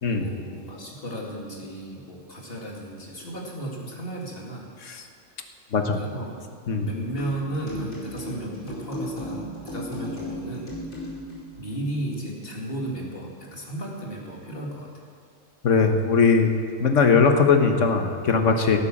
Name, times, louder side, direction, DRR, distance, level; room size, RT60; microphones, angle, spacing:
voice 1, 0.1-4.7 6.0-6.4 6.8-10.7 11.6-14.9, right 1 dB, 45° left, -2 dB, 2.6 m, -34 dB
sound 1, 7.2-11.4, left 1 dB, 90° left, 5.2 m, -36 dB
voice 2, 15.6-16.5 16.8-18.8, left 5 dB, 70° left, 5 dB, 1.6 m, -20 dB
17.0 x 9.1 x 7.3 m, 2.2 s
omnidirectional pair, 1.3 m